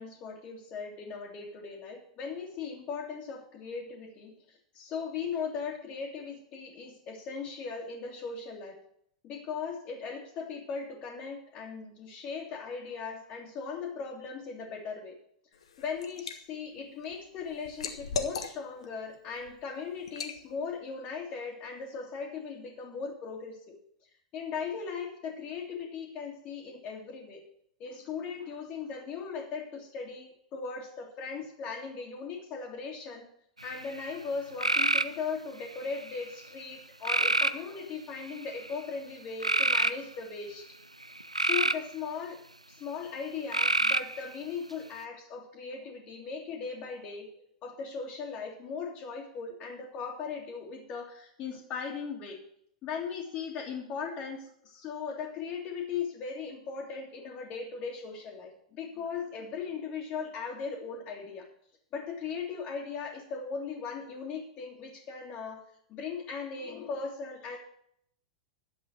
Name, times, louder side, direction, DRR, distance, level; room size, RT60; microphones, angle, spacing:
voice 1, 0.0-8.8 9.2-15.2 15.8-23.7 24.3-27.4 27.8-33.3 33.6-40.7 41.4-42.4 42.7-47.3 47.6-52.4 52.8-61.5 61.9-65.6 65.9-67.6, left 5 dB, 35° left, -3 dB, 2.2 m, -38 dB
Liquid, 15.5-16.4 16.8-18.9 19.3-19.5 20.1-20.4, left 5 dB, 65° left, 1.3 m, -37 dB
sound 1, 33.6-34.1 34.6-35.2 35.8-36.3 37.0-37.6 38.3-38.7 39.4-39.9 41.0-41.9 43.5-44.2, right 2 dB, 90° right, 0.4 m, -26 dB
11.5 x 7.9 x 6.2 m, 0.69 s
figure-of-eight pair, 95°, 3 cm